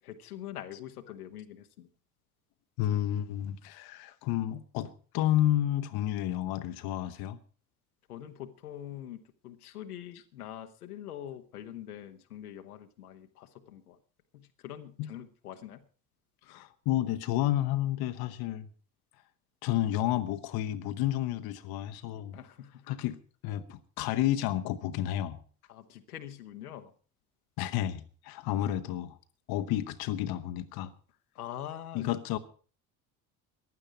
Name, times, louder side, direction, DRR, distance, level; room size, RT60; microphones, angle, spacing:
voice 1, 0.0-1.9 8.1-14.0 14.3-15.8 22.3-22.9 25.7-26.9 31.3-32.1, left 11 dB, 80° left, 1.3 m, -44 dB
voice 2, 2.8-7.4 10.1-10.2 15.0-15.1 16.5-18.7 19.6-22.4 22.9-23.2 23.4-25.4 27.6-29.2 29.5-30.9 31.9-32.4, left 13 dB, 55° left, 1.1 m, -31 dB
15.5 x 11.0 x 5.1 m
figure-of-eight pair, 60°, 44 cm